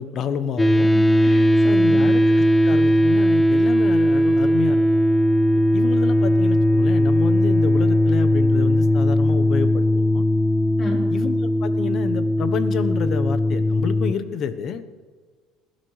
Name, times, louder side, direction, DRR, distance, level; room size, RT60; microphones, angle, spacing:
voice 1, 0.0-0.9 1.6-5.0 5.7-10.2 11.1-14.8, left 7 dB, 55° left, 10 dB, 1.0 m, -29 dB
sound 1, 0.6-14.1, left 1 dB, 10° left, 0.6 m, -18 dB
voice 2, 0.9-2.1 10.8-11.1, left 1 dB, 30° left, -1 dB, 4.0 m, -33 dB
21.0 x 12.0 x 3.2 m, 1.5 s
supercardioid pair, 100°, 0 cm